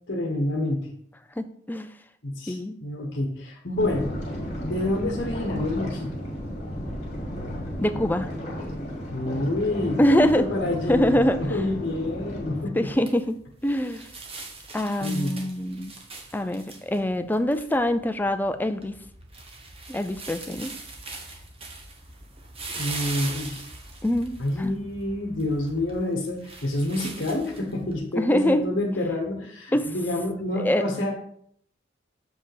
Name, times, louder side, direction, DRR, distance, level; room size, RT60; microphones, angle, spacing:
voice 1, 0.1-0.9 2.2-4.1 4.6-6.2 9.1-12.9 15.0-15.3 22.7-23.6 24.4-31.1, left 1 dB, 55° left, 1 dB, 1.2 m, -28 dB
voice 2, 1.4-1.9 2.5-2.8 7.8-8.3 10.0-10.4 10.9-11.4 12.8-14.0 14.7-16.0 16.3-18.9 19.9-20.7 24.0-24.7 28.2-28.7 29.7-29.9 30.6-30.8, equal, 10° left, 9 dB, 0.5 m, -24 dB
sound 1, 3.8-12.6, equal, 40° left, 2.3 m, -34 dB
sound 2, 12.8-27.9, right 3 dB, 30° right, 1.3 m, -41 dB
6.9 x 5.5 x 4.9 m, 0.65 s
head